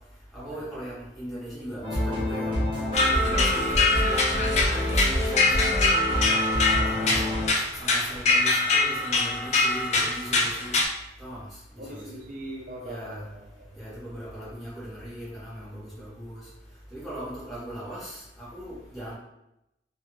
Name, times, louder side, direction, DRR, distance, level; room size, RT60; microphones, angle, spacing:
voice 1, 0.3-2.6 3.0-6.0 6.9-7.2 7.8-10.7 11.2-11.5 11.7-12.2 12.8-13.2 13.8-16.4 16.9-19.1, equal, ahead, -10 dB, 1.4 m, -39 dB
sound 1, 1.8-7.5, left 1 dB, 30° right, 0.8 m, -27 dB
sound 2, 2.9-10.8, left 2 dB, 40° left, 0.4 m, -24 dB
voice 2, 6.7-7.4 11.8-13.7, right 1 dB, 45° right, -1 dB, 0.4 m, -42 dB
3.4 x 2.3 x 3.0 m, 0.88 s
head